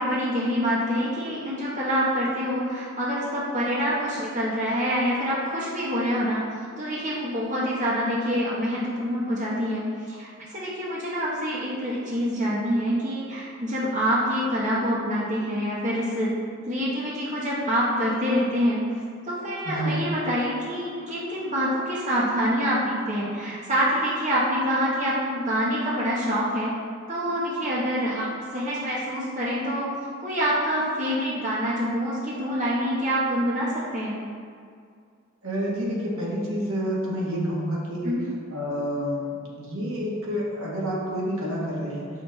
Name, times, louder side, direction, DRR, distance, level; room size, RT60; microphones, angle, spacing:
voice 1, 0.0-6.4 6.8-16.3 16.6-19.0 19.2-26.7 27.1-29.9 30.2-34.2 38.0-38.3, equal, 35° right, -6 dB, 1.2 m, -26 dB
voice 2, 19.6-20.0 35.4-38.2 38.5-42.1, equal, 70° right, -4 dB, 1.7 m, -28 dB
7.4 x 6.0 x 4.1 m, 2.2 s
head